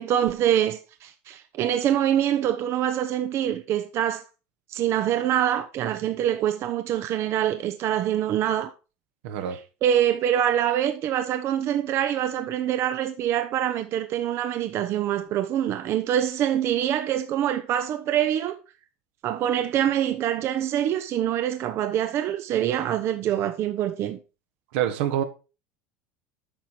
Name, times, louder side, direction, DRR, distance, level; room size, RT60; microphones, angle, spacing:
voice 1, 0.0-4.2 4.7-8.7 9.5-18.6 19.2-24.2, right 10 dB, 45° right, 0.7 m, -25 dB
voice 2, 9.2-9.6 24.7-25.2, right 10 dB, 75° right, 1.4 m, -26 dB
8.9 x 5.8 x 4.7 m
supercardioid pair, 130°, 6 cm